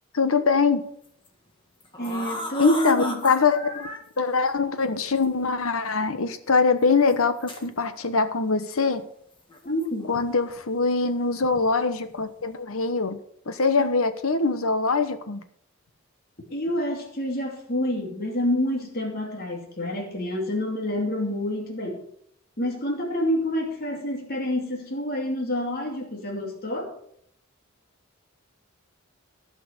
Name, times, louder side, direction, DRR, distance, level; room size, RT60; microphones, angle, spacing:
voice 1, 0.1-0.8 2.6-3.9 4.2-9.0 10.1-13.2 13.5-15.4, left 4 dB, 75° left, 10 dB, 1.1 m, -23 dB
sound 1, 1.0-1.3 1.8-4.0 5.2-5.3 6.0-6.1 7.1-7.7 9.5-10.2 10.5-10.8 11.4-11.7 12.0-12.4, left 1 dB, 25° left, 1.8 m, -36 dB
voice 2, 2.0-3.3 9.6-10.1 13.8-13.9 16.5-22.0 22.6-26.9, left 1 dB, 45° left, 0 dB, 2.6 m, -28 dB
15.0 x 6.0 x 6.7 m, 0.69 s
head